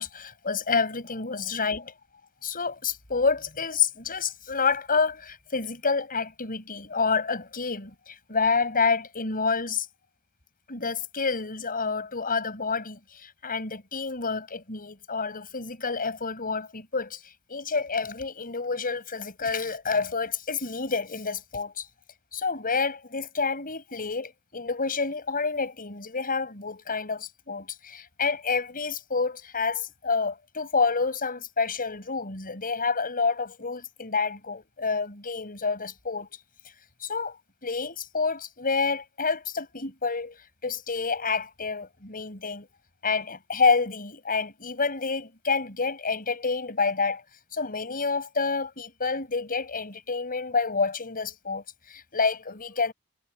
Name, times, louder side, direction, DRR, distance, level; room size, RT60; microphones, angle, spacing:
voice 1, 0.0-1.8 2.4-9.9 10.7-17.2 17.5-21.9 22.3-36.3 37.0-37.4 37.6-40.4 40.6-42.7 43.0-47.2 47.5-52.9, left 4 dB, 40° left, 7.6 m, -28 dB
head